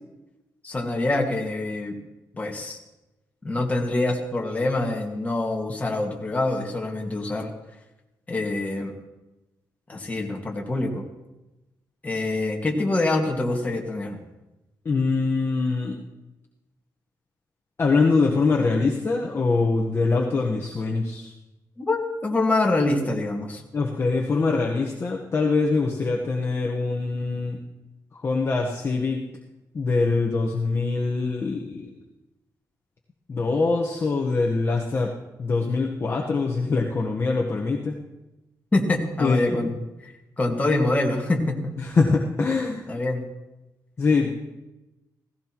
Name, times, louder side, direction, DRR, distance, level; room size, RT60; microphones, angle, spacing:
voice 1, 0.6-1.9 2.4-2.8 3.4-7.5 8.3-8.9 9.9-11.0 12.0-14.2 21.8-23.6 38.7-39.7 40.4-41.7 42.9-43.2, left 2 dB, 20° left, 1 dB, 1.8 m, -25 dB
voice 2, 14.8-16.0 17.8-21.3 23.7-27.6 28.2-29.2 29.7-31.9 33.3-35.1 35.4-38.0 39.2-39.8 41.8-42.9 44.0-44.4, left 3 dB, 35° left, -1 dB, 1.1 m, -23 dB
16.5 x 16.0 x 3.0 m, 1.0 s
wide cardioid pair, 130°, 7 cm